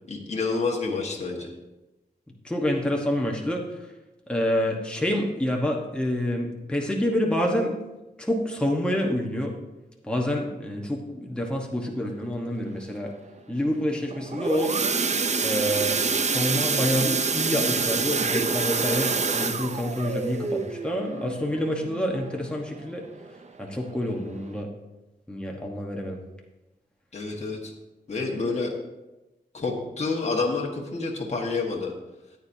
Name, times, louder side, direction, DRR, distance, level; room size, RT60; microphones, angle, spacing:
voice 1, 0.1-1.5 27.1-27.7 28.1-28.7 29.5-31.9, left 3 dB, 40° left, -2 dB, 1.5 m, -28 dB
voice 2, 2.4-3.8 4.3-7.7 8.2-9.5 10.0-13.1 13.5-14.7 15.4-23.0 23.6-24.7 25.3-26.2, equal, 5° left, 0 dB, 1.1 m, -27 dB
sound 1, 14.1-22.8 23.2-23.5 23.7-23.8 24.3-24.4, right 4 dB, 40° right, 0.5 m, -27 dB
14.0 x 8.9 x 2.7 m, 1.0 s
wide cardioid pair, 145°, 17 cm